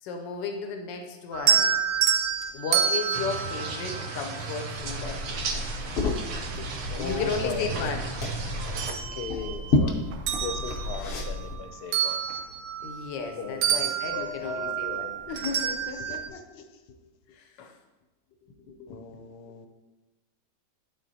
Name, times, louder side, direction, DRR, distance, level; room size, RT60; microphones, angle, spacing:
voice 1, 0.0-1.8 2.5-5.7 6.6-6.7 7.0-8.1 8.8-8.9 12.8-16.6 17.3-17.8 18.7-19.0, left 5 dB, 90° left, 4 dB, 1.3 m, -35 dB
sound 1, 1.3-4.7 6.3-6.4 6.9-8.2 8.5-9.8 10.1-13.3 13.6-16.3, right 8 dB, 80° right, 1.2 m, -28 dB
sound 2, 3.1-8.9, right 4 dB, 60° right, 1.1 m, -35 dB
Liquid, 4.8-11.5, left 2 dB, 55° left, 0.7 m, -31 dB
voice 2, 6.9-7.6 8.9-10.0 10.3-12.2 13.4-15.1 18.9-19.7, left 6 dB, 70° left, 7 dB, 1.1 m, -37 dB
11.5 x 3.9 x 2.7 m, 1.1 s
omnidirectional pair, 1.9 m